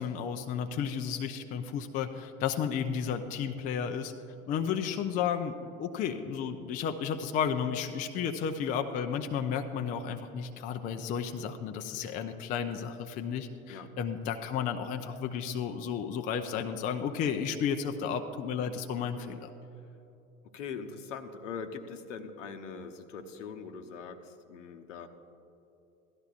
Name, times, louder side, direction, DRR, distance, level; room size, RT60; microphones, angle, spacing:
voice 1, 0.0-4.1 4.5-19.5, left 7 dB, 20° left, 6 dB, 0.4 m, -33 dB
voice 2, 20.5-25.1, left 6 dB, 60° left, 7 dB, 0.9 m, -42 dB
16.5 x 12.5 x 2.4 m, 2.9 s
figure-of-eight pair, 75°, 41 cm